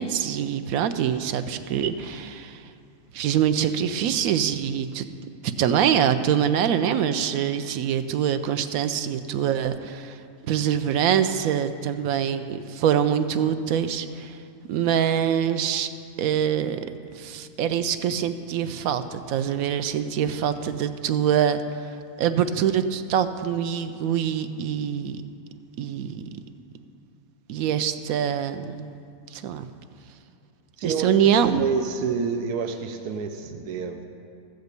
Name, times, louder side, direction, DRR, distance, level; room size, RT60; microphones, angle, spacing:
voice 1, 0.0-2.6 3.1-5.1 5.6-10.2 10.5-14.4 14.7-15.9 16.2-16.9 17.1-21.6 22.2-25.2 25.8-26.3 27.5-28.9 29.3-29.7 30.8-31.6, right 9 dB, 70° right, 10 dB, 1.0 m, -24 dB
voice 2, 30.8-31.1 31.5-34.0, right 6 dB, 90° right, 6 dB, 1.2 m, -28 dB
14.0 x 5.2 x 8.0 m, 2.5 s
omnidirectional pair, 1.6 m